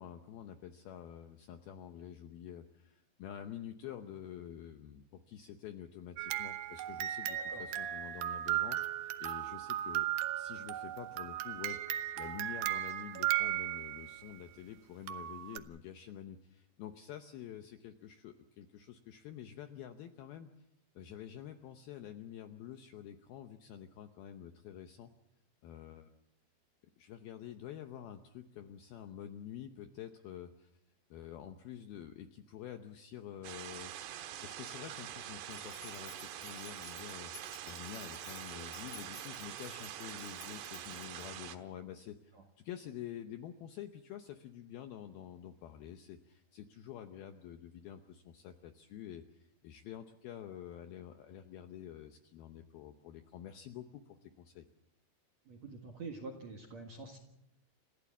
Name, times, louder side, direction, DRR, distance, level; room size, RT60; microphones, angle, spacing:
voice 1, 0.0-10.1 10.4-11.8 12.2-20.5 21.0-25.1 25.6-26.1 27.0-30.7 31.1-33.9 34.4-54.7, left 10 dB, 75° left, 7 dB, 2.3 m, -48 dB
sound 1, 6.2-14.2 15.1-15.6, right 13 dB, 90° right, 2.0 m, -36 dB
sound 2, 33.4-41.6, right 11 dB, 70° right, 3.0 m, -45 dB
sound 3, 35.5-41.3, left 3 dB, 25° left, 3.3 m, -55 dB
voice 2, 55.5-57.2, right 3 dB, 55° right, 2 dB, 2.1 m, -46 dB
28.0 x 15.5 x 7.3 m, 0.85 s
omnidirectional pair, 5.5 m